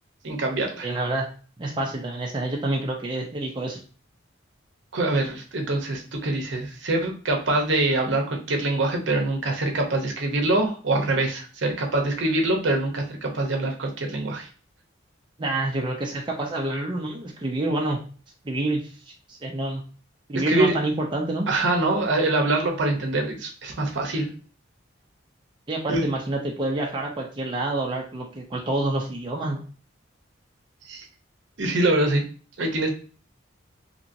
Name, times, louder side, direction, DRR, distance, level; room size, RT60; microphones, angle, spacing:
voice 1, 0.2-0.9 4.9-14.5 20.3-20.8 21.5-24.3 25.9-26.0 30.9-31.1 31.6-32.2 32.6-32.9, right 2 dB, 65° right, 2 dB, 0.7 m, -24 dB
voice 2, 0.8-1.3 1.6-3.8 15.4-18.0 18.4-18.9 19.3-19.8 20.3-21.5 25.7-29.6, right 2 dB, 25° right, -1 dB, 0.4 m, -27 dB
2.9 x 2.8 x 2.5 m, 0.39 s
head